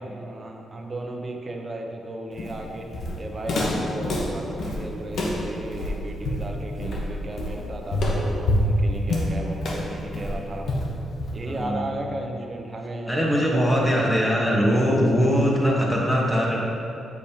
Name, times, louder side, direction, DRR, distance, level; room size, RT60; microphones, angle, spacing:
voice 1, 0.0-10.7 11.3-14.7, right 1 dB, 30° right, 1 dB, 0.8 m, -34 dB
Walk footsteps, 2.4-11.6, left 1 dB, 60° left, 1.0 m, -27 dB
voice 2, 11.4-11.9 13.1-16.6, equal, 10° left, -2 dB, 1.2 m, -21 dB
8.5 x 5.3 x 2.8 m, 2.6 s
cardioid pair, 95°, 0 cm